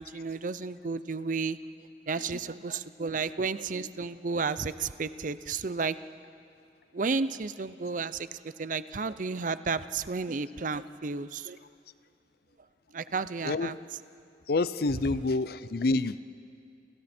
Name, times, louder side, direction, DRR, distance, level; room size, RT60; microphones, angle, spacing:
voice 1, 0.0-1.6 2.1-6.0 6.9-8.3 8.6-11.6 12.9-13.7, right 4 dB, 45° right, 14 dB, 0.6 m, -32 dB
voice 2, 14.5-16.2, left 3 dB, 60° left, 15 dB, 0.6 m, -27 dB
29.0 x 28.5 x 4.4 m, 2.6 s
head